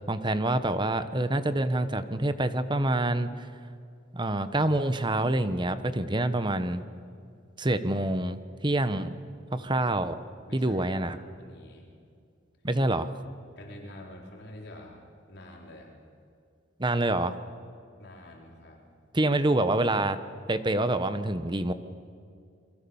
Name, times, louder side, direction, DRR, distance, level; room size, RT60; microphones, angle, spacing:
voice 1, 0.1-3.5 4.1-6.8 7.6-9.2 9.5-10.2 10.5-11.2 12.6-13.1 16.8-17.3 19.1-20.2 20.5-21.7, right 1 dB, 25° right, 11 dB, 1.0 m, -26 dB
voice 2, 10.5-11.9 13.6-15.9 18.0-18.8, left 1 dB, 60° left, 0 dB, 4.1 m, -47 dB
29.0 x 23.0 x 7.1 m, 2.3 s
head